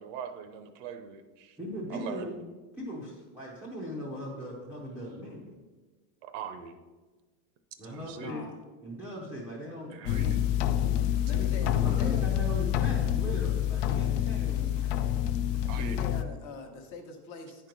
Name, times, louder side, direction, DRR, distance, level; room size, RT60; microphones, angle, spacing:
voice 1, 0.0-1.6 1.9-2.3 6.2-6.8 7.8-8.4 9.9-10.4 15.7-16.1, right 7 dB, 50° right, 8 dB, 0.7 m, -41 dB
voice 2, 1.6-2.3 2.8-5.5 7.8-8.5 8.8-10.4 11.4-14.9 15.6-15.8, equal, 5° right, -6 dB, 0.5 m, -39 dB
voice 3, 8.2-8.5 11.2-12.4 15.7-17.7, left 3 dB, 40° left, 4 dB, 0.9 m, -43 dB
sound 1, 10.0-16.2, left 11 dB, 55° left, 0.5 m, -27 dB
9.5 x 4.5 x 5.1 m, 1.3 s
supercardioid pair, 175°, 47 cm